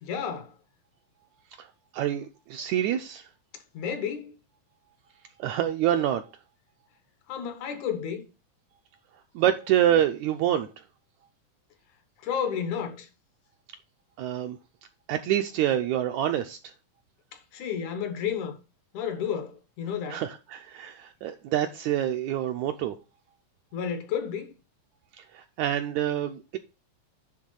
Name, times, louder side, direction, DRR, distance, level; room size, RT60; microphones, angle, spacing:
voice 1, 0.0-0.5 3.5-4.3 7.3-8.3 12.2-13.1 17.3-18.6 18.9-20.2 23.7-24.5, left 7 dB, 70° left, 2.3 m, -32 dB
voice 2, 1.9-3.2 5.4-6.2 9.3-10.7 14.2-14.6 15.1-16.6 20.1-22.9 25.3-26.6, right 11 dB, 80° right, 1.7 m, -26 dB
9.8 x 3.6 x 6.3 m
omnidirectional pair, 3.8 m